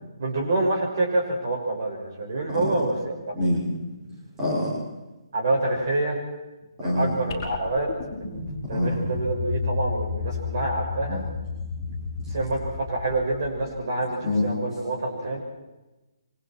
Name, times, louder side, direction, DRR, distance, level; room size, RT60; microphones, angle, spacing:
voice 1, 0.2-3.3 5.3-6.2 6.8-7.9 8.2-8.4 8.7-11.2 12.3-15.4, right 2 dB, 40° right, 0 dB, 6.4 m, -27 dB
voice 2, 4.4-4.7 6.8-7.2 8.7-9.0 11.1-11.2 11.7-11.9 12.2-12.4 14.2-14.5, left 1 dB, 10° right, -7 dB, 6.2 m, -25 dB
sound 1, 7.3-13.8, left 4 dB, 25° left, 6.7 m, -32 dB
29.0 x 24.5 x 4.7 m, 1.1 s
hypercardioid pair, 180°, 3 cm